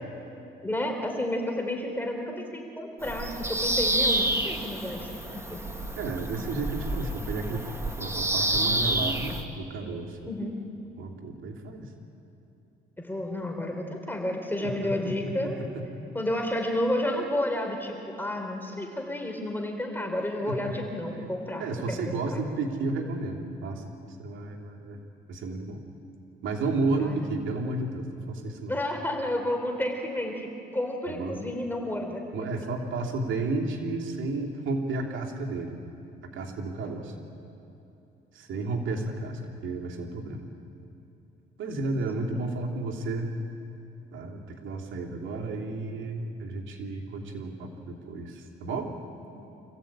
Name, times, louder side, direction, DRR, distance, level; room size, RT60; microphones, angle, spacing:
voice 1, 0.6-5.1 5.5-5.6 10.3-10.6 13.0-15.6 16.1-22.0 27.0-27.3 28.7-32.3 36.8-36.9 38.9-39.0 41.7-41.8 49.3-49.5, left 1 dB, 10° left, 3 dB, 3.8 m, -31 dB
Bird vocalization bird call bird song, 3.0-9.4, right 1 dB, 15° right, 1.7 m, -29 dB
voice 2, 6.0-7.7 8.0-10.2 11.0-11.9 14.6-14.9 15.2-15.8 20.4-20.7 21.6-23.8 24.2-25.0 25.3-25.8 26.4-28.7 31.1-31.4 32.3-35.8 36.3-37.1 38.3-40.4 41.6-43.3 44.1-48.9, right 3 dB, 75° right, 0 dB, 3.1 m, -32 dB
27.0 x 15.5 x 8.9 m, 2.8 s
cardioid pair, 90°, 20 cm